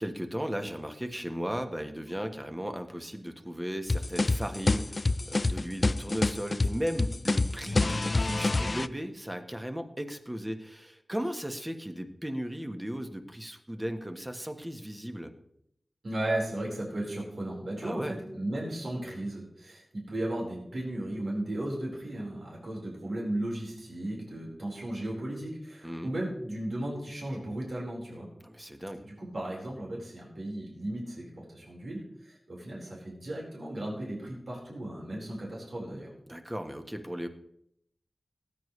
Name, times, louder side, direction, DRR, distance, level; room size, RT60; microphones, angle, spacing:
voice 1, 0.0-15.3 17.8-18.1 25.8-26.1 28.4-29.0 36.3-37.3, equal, 15° right, 6 dB, 1.3 m, -36 dB
sound 1, 3.9-8.9, left 2 dB, 45° left, 0.4 m, -27 dB
voice 2, 16.0-28.3 29.0-36.1, right 1 dB, 75° right, -3 dB, 4.6 m, -35 dB
19.0 x 9.6 x 3.3 m, 0.74 s
wide cardioid pair, 85°, 0 cm